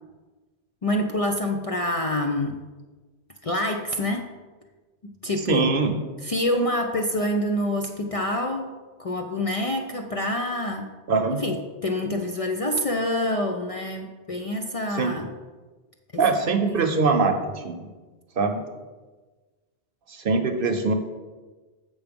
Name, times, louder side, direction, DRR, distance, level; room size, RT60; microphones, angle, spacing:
voice 1, 0.8-2.6 3.4-4.3 5.0-5.7 6.2-8.7 9.0-10.9 11.4-15.3 16.8-16.9, left 1 dB, 45° left, 3 dB, 0.5 m, -26 dB
voice 2, 5.4-5.9 11.1-11.4 14.9-15.1 16.2-17.9 18.4-18.6 20.1-20.9, right 4 dB, 60° right, 6 dB, 0.9 m, -23 dB
7.0 x 5.8 x 5.2 m, 1.3 s
omnidirectional pair, 1.1 m